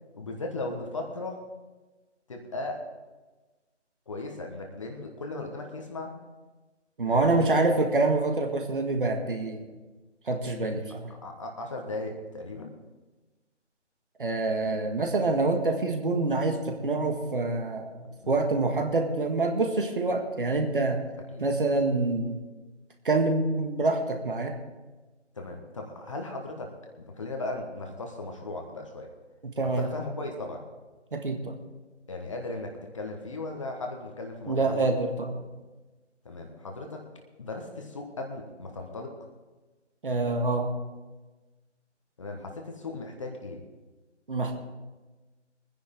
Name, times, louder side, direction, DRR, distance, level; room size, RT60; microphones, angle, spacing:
voice 1, 0.1-1.4 2.3-2.8 4.1-6.1 7.1-7.7 11.2-12.7 18.1-18.4 21.3-21.4 25.3-26.7 27.0-29.1 29.6-30.6 32.1-34.9 36.2-37.0 37.4-39.2 42.2-43.6, left 2 dB, 25° left, 2 dB, 1.4 m, -37 dB
voice 2, 7.0-9.7 10.3-11.1 14.2-21.0 21.4-22.4 23.1-24.6 29.4-29.9 31.1-31.6 34.5-35.5 40.0-40.7 44.3-44.6, right 3 dB, 45° right, 4 dB, 1.8 m, -26 dB
22.5 x 10.0 x 3.8 m, 1.2 s
figure-of-eight pair, 160°, 36 cm